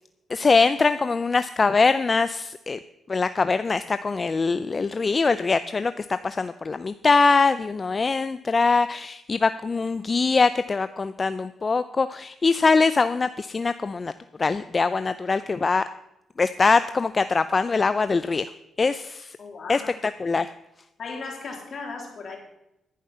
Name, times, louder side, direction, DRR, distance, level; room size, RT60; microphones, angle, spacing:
voice 1, 0.3-2.8 3.1-14.1 14.4-15.8 16.4-18.5 18.8-19.4 19.7-20.5, left 4 dB, 35° left, 12 dB, 0.5 m, -22 dB
voice 2, 19.4-19.9 21.0-22.4, left 4 dB, 55° left, 1 dB, 3.5 m, -36 dB
11.0 x 10.5 x 5.6 m, 0.87 s
cardioid pair, 85°, 0 cm